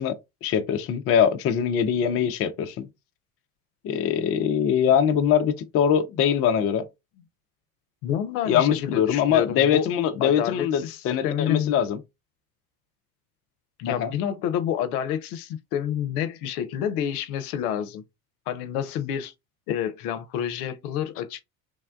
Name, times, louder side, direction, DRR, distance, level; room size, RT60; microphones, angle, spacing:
voice 1, 0.0-2.9 3.8-6.9 8.5-12.0 14.0-14.1, left 8 dB, 30° left, 0.4 m, -22 dB
voice 2, 8.0-9.9 10.2-11.8 13.8-18.0 18.5-19.3 19.7-21.4, left 9 dB, 70° left, 0.7 m, -28 dB
3.4 x 2.1 x 2.4 m
hypercardioid pair, 80°, 46 cm